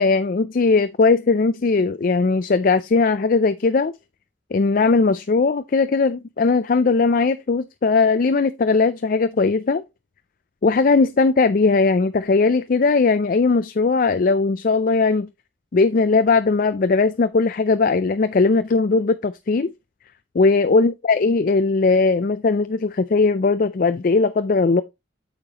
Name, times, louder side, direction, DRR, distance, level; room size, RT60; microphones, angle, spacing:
voice 1, 0.0-3.9 4.5-9.8 10.6-15.3 15.7-19.7 20.3-24.8, left 4 dB, 50° left, 0.4 m, -19 dB
8.8 x 6.6 x 2.9 m
head